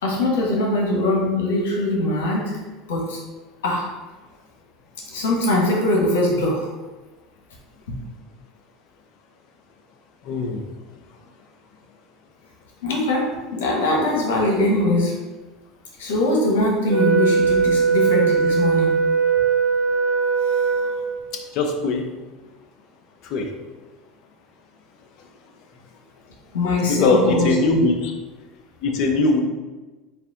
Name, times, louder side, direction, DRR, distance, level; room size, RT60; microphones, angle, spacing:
voice 1, 0.0-2.6 2.9-3.2 3.6-3.9 5.1-6.7 12.8-15.1 16.0-19.0 26.5-27.8, left 2 dB, 75° left, -2 dB, 1.0 m, -21 dB
voice 2, 10.3-10.6 21.5-22.0 23.3-23.5 26.9-28.1 28.8-29.4, left 3 dB, 55° left, 4 dB, 0.6 m, -20 dB
Wind instrument woodwind instrument, 16.9-21.3, right 6 dB, 60° right, 1.0 m, -20 dB
4.1 x 2.5 x 3.7 m, 1.2 s
hypercardioid pair, 75°, 0 cm